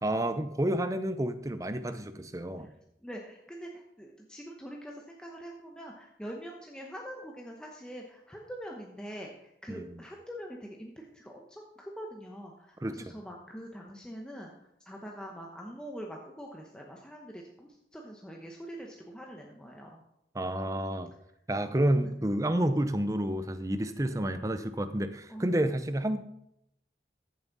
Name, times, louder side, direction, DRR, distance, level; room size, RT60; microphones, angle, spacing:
voice 1, 0.0-2.7 9.7-9.9 12.8-13.1 20.3-21.1 21.5-26.2, right 1 dB, 20° right, 10 dB, 0.6 m, -30 dB
voice 2, 3.0-20.0 25.3-25.4, equal, 5° left, -1 dB, 0.9 m, -44 dB
14.5 x 7.2 x 4.0 m, 0.79 s
head